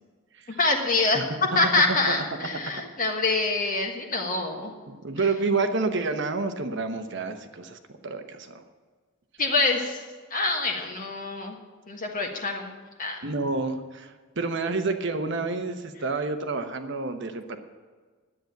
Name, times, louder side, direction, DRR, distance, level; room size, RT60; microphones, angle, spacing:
voice 1, 0.6-1.2 1.5-4.7 9.4-10.0 10.3-11.6 11.9-13.2, left 3 dB, 40° left, 1 dB, 1.4 m, -25 dB
voice 2, 4.9-8.6 13.2-17.6, right 3 dB, 55° right, 7 dB, 1.0 m, -29 dB
10.5 x 8.7 x 9.0 m, 1.5 s
head